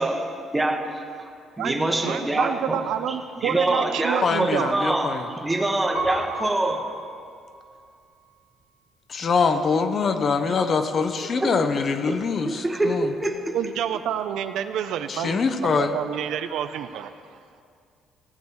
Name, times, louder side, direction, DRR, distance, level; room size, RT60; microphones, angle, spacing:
voice 1, 0.0-0.9 1.6-6.9 11.4-11.5 12.1-13.5, right 2 dB, 10° right, 3 dB, 0.9 m, -25 dB
voice 2, 1.6-4.7 13.5-17.1, right 9 dB, 70° right, 10 dB, 0.5 m, -28 dB
voice 3, 4.2-5.2 9.1-13.1 15.1-15.9, left 5 dB, 35° left, 8 dB, 0.6 m, -24 dB
Piano, 5.9-8.7 9.3-10.0, right 1 dB, 70° left, 2.4 m, -36 dB
16.0 x 8.3 x 4.7 m, 2.3 s
cardioid pair, 165°, 0 cm